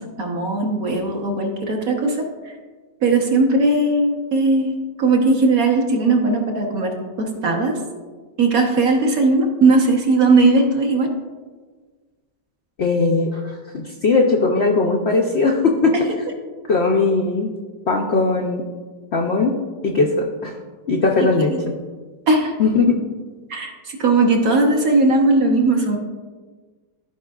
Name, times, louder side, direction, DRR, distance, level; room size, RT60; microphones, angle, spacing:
voice 1, 0.2-2.5 3.0-6.9 7.2-7.7 8.4-11.1 21.2-21.6 22.3-22.5 23.5-26.0, right 3 dB, 55° right, 1 dB, 1.3 m, -18 dB
voice 2, 12.8-15.9 16.7-17.5 17.9-18.6 19.1-19.5 19.8-20.5 20.9-21.5 22.6-22.9, left 3 dB, 75° left, 1 dB, 0.6 m, -19 dB
14.5 x 4.9 x 2.4 m, 1.4 s
omnidirectional pair, 1.9 m